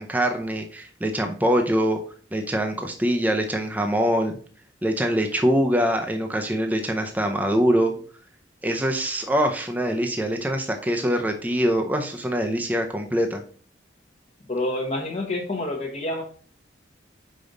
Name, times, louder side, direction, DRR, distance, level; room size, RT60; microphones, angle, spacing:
voice 1, 0.0-2.0 2.3-4.4 4.8-7.9 8.6-13.4, equal, 10° right, 3 dB, 0.5 m, -23 dB
voice 2, 14.5-16.2, left 1 dB, 35° left, -1 dB, 0.9 m, -28 dB
5.2 x 5.0 x 3.9 m, 0.44 s
head